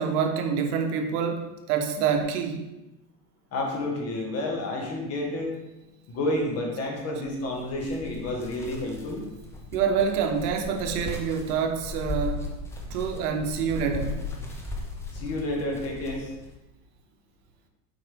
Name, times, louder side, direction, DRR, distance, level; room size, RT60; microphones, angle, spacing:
voice 1, 0.0-2.6 9.7-12.5 12.9-14.3, right 6 dB, 75° right, 5 dB, 1.1 m, -27 dB
voice 2, 3.5-5.5 6.1-9.3 15.1-16.3, left 1 dB, 30° left, 0 dB, 1.6 m, -30 dB
sound 1, 7.2-16.5, left 3 dB, 5° left, 0.4 m, -37 dB
7.7 x 5.1 x 3.5 m, 0.99 s
supercardioid pair, 145°, 46 cm